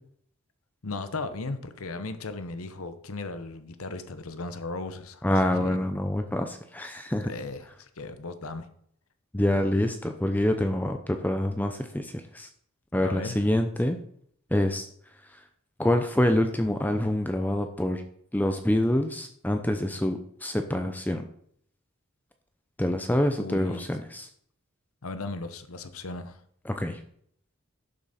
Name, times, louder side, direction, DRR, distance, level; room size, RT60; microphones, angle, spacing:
voice 1, 0.8-5.8 7.2-8.7 13.0-13.5 23.4-23.9 25.0-26.4, left 3 dB, 80° left, 10 dB, 0.9 m, -36 dB
voice 2, 5.2-7.3 9.3-12.5 12.9-14.0 14.5-14.9 15.8-18.0 18.3-21.2 22.8-24.3 26.7-27.0, left 1 dB, 10° left, 6 dB, 0.6 m, -26 dB
12.0 x 7.1 x 4.2 m, 0.65 s
head